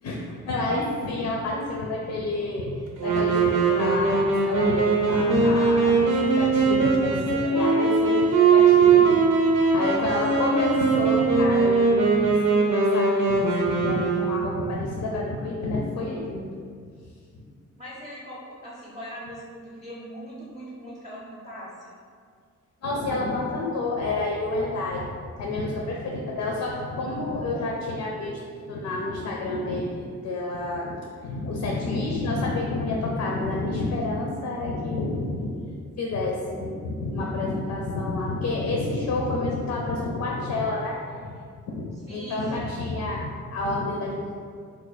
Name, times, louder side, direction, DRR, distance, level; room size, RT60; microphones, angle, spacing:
voice 1, 0.0-9.2 9.5-16.5 17.3-17.4 22.8-25.1 25.4-28.4 28.7-31.0 31.2-35.6 36.0-41.3 41.7-44.3, left 2 dB, 65° left, -2 dB, 0.5 m, -29 dB
Wind instrument woodwind instrument, 3.0-14.7, right 4 dB, 80° right, 0.6 m, -21 dB
voice 2, 17.8-21.7 42.1-42.9, equal, 15° right, -7 dB, 0.6 m, -41 dB
2.5 x 2.3 x 4.0 m, 2.1 s
cardioid pair, 115°, 30 cm